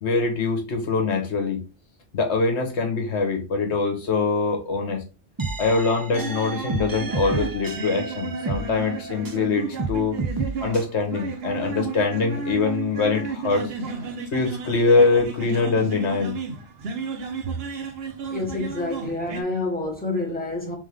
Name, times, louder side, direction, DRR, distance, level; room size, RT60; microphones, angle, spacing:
voice 1, 0.0-1.6 2.1-5.0 5.6-10.2 10.6-13.7 14.3-16.4, left 4 dB, 65° left, 1.4 m, -23 dB
sound 1, 5.4-9.5 9.8-10.8, right 3 dB, 35° right, 0.3 m, -31 dB
sound 2, 6.1-19.4, right 5 dB, 60° right, 0.9 m, -33 dB
voice 2, 18.3-20.7, left 2 dB, 5° left, 1.4 m, -28 dB
3.6 x 3.5 x 3.4 m
omnidirectional pair, 1.3 m